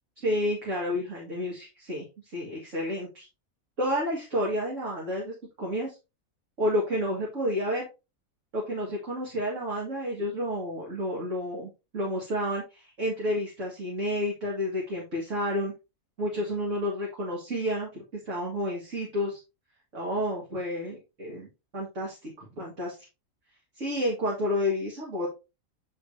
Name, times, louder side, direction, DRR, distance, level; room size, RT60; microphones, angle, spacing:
voice 1, 0.2-3.3 3.8-6.0 6.6-7.9 8.5-15.7 16.2-19.4 19.9-23.0 23.8-25.3, left 1 dB, 60° right, -3 dB, 2.3 m, -30 dB
9.2 x 4.9 x 2.7 m, 0.28 s
omnidirectional pair, 1.5 m